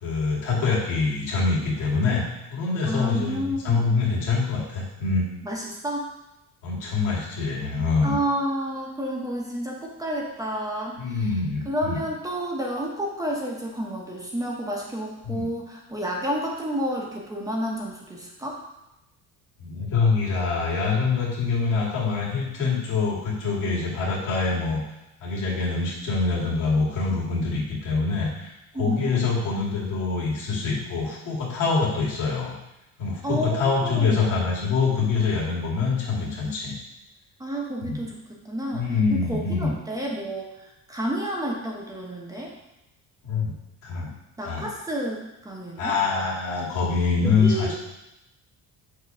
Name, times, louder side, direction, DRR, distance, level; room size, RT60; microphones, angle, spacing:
voice 1, 0.0-2.3 2.5-5.3 6.6-8.1 11.0-12.0 15.2-15.5 19.6-24.8 25.2-32.5 33.0-36.8 37.8-38.0 38.7-39.7 43.2-43.5 43.8-44.2 44.4-44.7 45.8-47.7, left 4 dB, 75° left, -5 dB, 2.3 m, -25 dB
voice 2, 2.9-4.0 5.4-6.0 8.0-11.3 11.6-18.6 28.7-29.2 33.2-34.2 37.4-38.9 39.1-42.5 44.4-46.0 47.2-47.7, equal, 10° right, -2 dB, 1.0 m, -30 dB
6.5 x 3.0 x 5.5 m, 0.92 s
cardioid pair, 135°, 31 cm